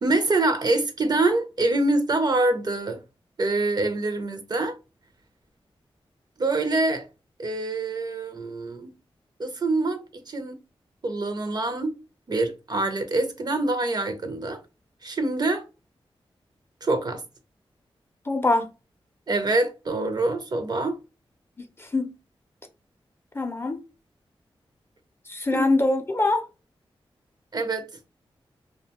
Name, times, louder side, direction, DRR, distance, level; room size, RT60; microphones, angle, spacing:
voice 1, 0.0-3.0 3.4-4.7 6.4-7.1 7.4-8.9 9.4-10.6 11.0-11.9 12.3-14.6 15.0-15.6 16.8-17.2 19.3-21.0 25.5-25.6 27.5-27.9, right 2 dB, 45° right, 0.5 m, -25 dB
voice 2, 18.3-18.7 21.8-22.1 23.3-23.8 25.3-26.5, left 2 dB, 25° left, 0.5 m, -23 dB
2.4 x 2.2 x 2.8 m
wide cardioid pair, 80°, 10 cm